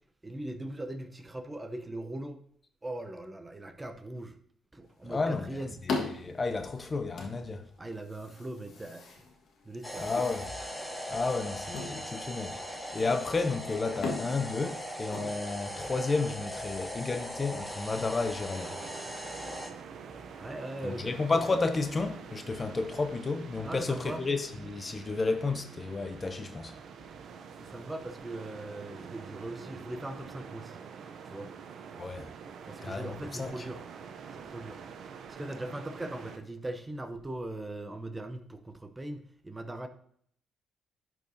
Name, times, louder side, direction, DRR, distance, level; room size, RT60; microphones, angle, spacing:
voice 1, 0.2-2.4 2.8-4.4 4.7-5.7 7.8-9.1 9.6-10.1 20.4-21.2 23.6-24.2 27.6-30.8 31.2-31.5 32.6-33.8 34.3-34.8 35.3-39.9, right 1 dB, 15° right, 0.7 m, -40 dB
sound 1, 4.9-15.9, left 4 dB, 65° left, 1.5 m, -41 dB
voice 2, 5.0-5.6 5.9-7.6 10.0-10.5 11.1-12.6 12.9-18.8 20.8-26.7 32.0-32.3 32.8-33.5, left 3 dB, 30° left, 0.6 m, -32 dB
sound 2, 9.8-19.7, equal, 5° left, 1.0 m, -40 dB
sound 3, 18.5-36.4, right 6 dB, 65° right, 0.6 m, -46 dB
11.0 x 4.7 x 2.7 m
cardioid pair, 90°, 0 cm